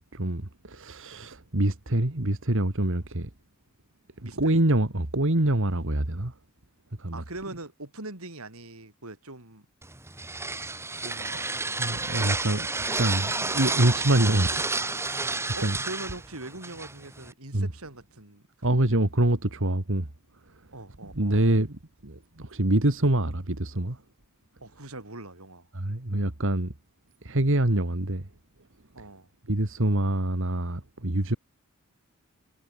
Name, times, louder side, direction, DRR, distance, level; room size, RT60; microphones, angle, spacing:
voice 1, 0.0-3.3 4.2-6.3 7.0-7.2 11.8-12.7 13.0-14.6 15.6-15.8 17.5-17.7 18.6-20.1 21.1-24.0 25.7-26.7 27.2-28.3 29.5-31.4, right 1 dB, 65° right, 2.2 m, -25 dB
voice 2, 4.2-4.6 7.1-9.7 11.0-12.3 15.6-18.9 20.7-21.4 24.6-25.7 28.9-29.3, right 2 dB, 80° right, 5.3 m, -42 dB
sound 1, 9.8-17.3, right 3 dB, 10° right, 1.7 m, -31 dB
head